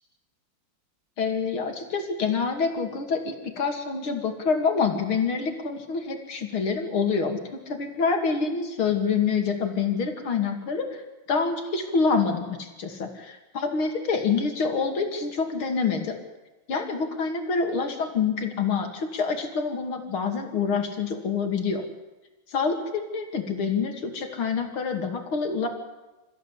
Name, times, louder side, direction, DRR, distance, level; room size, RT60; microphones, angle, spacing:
voice 1, 1.2-7.4 7.7-11.0 11.3-16.2 16.7-21.8 22.5-25.7, left 5 dB, 85° left, 4 dB, 3.3 m, -26 dB
28.0 x 15.0 x 8.4 m, 1.1 s
omnidirectional pair, 2.3 m